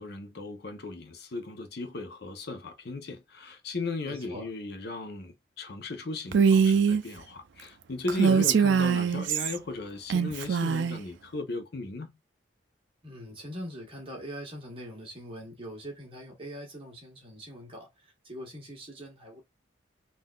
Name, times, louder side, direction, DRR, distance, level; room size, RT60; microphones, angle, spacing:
voice 1, 0.0-12.1, left 3 dB, 55° left, 0.6 m, -36 dB
voice 2, 4.0-4.5 8.3-8.6 13.0-19.4, equal, 30° right, 1.3 m, -42 dB
Female speech woman speaking, 6.3-7.0 8.1-9.6 10.1-11.0, right 6 dB, 65° right, 0.4 m, -23 dB
3.7 x 2.5 x 2.3 m
head